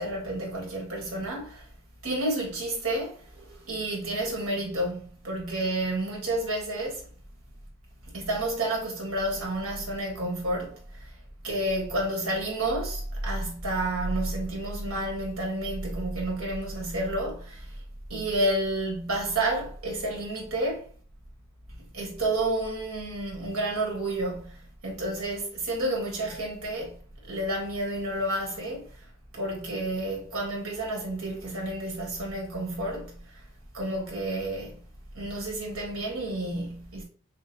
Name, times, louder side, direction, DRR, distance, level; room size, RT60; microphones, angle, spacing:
voice 1, 0.0-1.7 2.0-7.1 8.1-11.1 11.4-17.7 18.1-20.9 21.9-27.0 27.2-28.9 29.3-33.4 33.7-34.8 35.1-37.0, right 1 dB, 80° right, 1.6 m, -30 dB
6.2 x 2.4 x 2.7 m
head